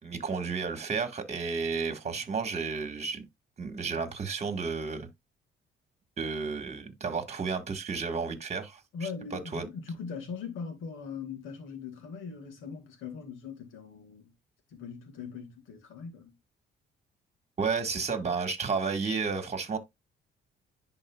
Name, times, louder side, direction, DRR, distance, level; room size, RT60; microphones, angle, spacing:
voice 1, 0.0-3.2 3.6-5.1 6.2-9.7 17.6-19.8, right 5 dB, 35° right, 1.6 m, -32 dB
voice 2, 8.9-9.6 10.0-14.2 14.7-16.3, left 6 dB, 85° left, 2.1 m, -41 dB
10.5 x 4.1 x 2.3 m
cardioid pair, 90°, 20 cm